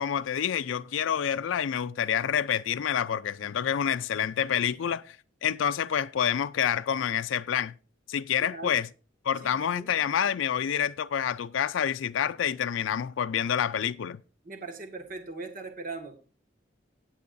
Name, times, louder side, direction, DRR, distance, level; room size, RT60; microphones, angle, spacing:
voice 1, 0.0-5.2 5.4-7.7 8.1-8.9 9.2-14.2, left 8 dB, 90° left, 0.4 m, -28 dB
voice 2, 9.4-9.9 14.4-16.2, right 3 dB, 45° right, 1.8 m, -40 dB
18.5 x 7.8 x 2.6 m
head